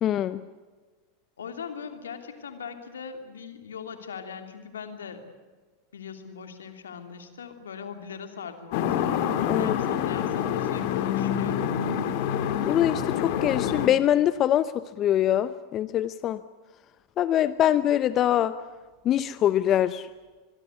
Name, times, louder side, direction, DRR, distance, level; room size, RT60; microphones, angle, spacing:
voice 1, 0.0-0.4 9.5-9.7 12.6-16.4 17.2-18.5 19.0-20.0, left 11 dB, 40° left, 15 dB, 0.8 m, -23 dB
voice 2, 1.4-5.2 5.9-9.1 9.5-11.7, left 6 dB, 85° left, 7 dB, 2.9 m, -40 dB
sound 1, 8.7-13.9, left 9 dB, 60° left, 2.2 m, -27 dB
24.5 x 22.0 x 8.3 m, 1.4 s
hypercardioid pair, 90°, 0 cm